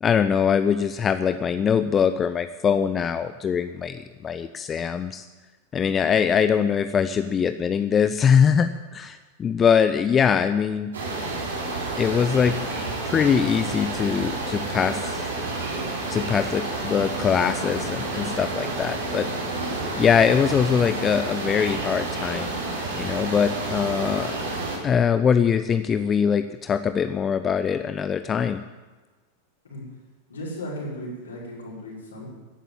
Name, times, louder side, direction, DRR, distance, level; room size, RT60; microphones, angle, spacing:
voice 1, 0.0-5.3 5.7-10.9 12.0-12.6 13.0-15.3 16.1-19.3 20.0-22.5 22.9-24.4 24.8-28.6, left 7 dB, 25° left, 11 dB, 0.6 m, -22 dB
sound 1, 10.9-24.8, right 2 dB, 65° right, 4.6 m, -30 dB
voice 2, 30.3-32.3, equal, 70° left, -5 dB, 6.1 m, -35 dB
15.0 x 11.0 x 7.3 m, 1.3 s
figure-of-eight pair, 90°, 0 cm